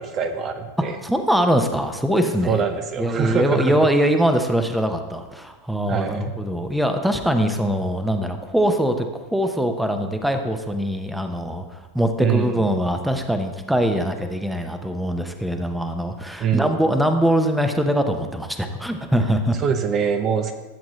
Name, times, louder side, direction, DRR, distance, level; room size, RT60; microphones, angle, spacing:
voice 1, 0.0-1.0 2.5-3.7 5.9-6.3 12.2-12.6 16.4-16.8 19.6-20.5, right 6 dB, 35° right, 7 dB, 0.7 m, -24 dB
voice 2, 1.0-2.6 3.0-19.6, equal, 5° right, 6 dB, 0.9 m, -22 dB
13.5 x 7.5 x 3.1 m, 1.2 s
figure-of-eight pair, 90°, 0 cm